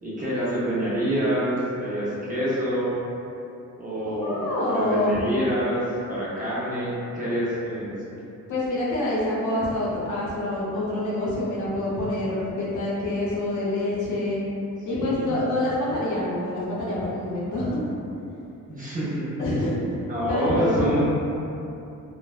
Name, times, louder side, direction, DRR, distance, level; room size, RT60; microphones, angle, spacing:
voice 1, 0.0-3.0 3.8-5.8 6.1-7.9 14.9-15.4 18.7-19.3 20.1-21.0, equal, 25° right, -10 dB, 0.6 m, -27 dB
voice 2, 4.2-5.2 8.5-14.4 14.9-17.8 19.4-19.9 20.3-20.9, left 1 dB, 65° left, -7 dB, 0.7 m, -26 dB
3.1 x 2.1 x 2.3 m, 2.8 s
wide cardioid pair, 160°, 32 cm